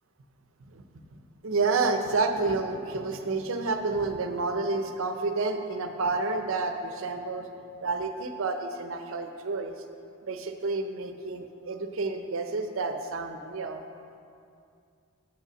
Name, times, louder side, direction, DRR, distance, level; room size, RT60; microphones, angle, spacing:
voice 1, 1.4-7.5 7.8-9.8 10.3-13.8, right 3 dB, 65° right, 6 dB, 0.6 m, -29 dB
6.6 x 5.5 x 6.2 m, 2.4 s
head